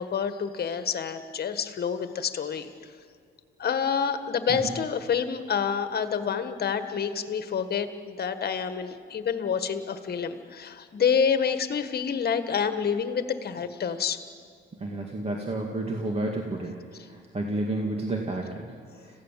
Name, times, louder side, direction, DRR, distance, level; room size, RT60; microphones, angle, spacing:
voice 1, 0.0-2.7 3.6-14.2, left 7 dB, 50° left, 9 dB, 1.5 m, -28 dB
voice 2, 14.8-16.8 17.1-18.7, right 2 dB, 30° right, 1 dB, 2.2 m, -30 dB
26.5 x 16.0 x 7.5 m, 2.1 s
cardioid pair, 90°, 20 cm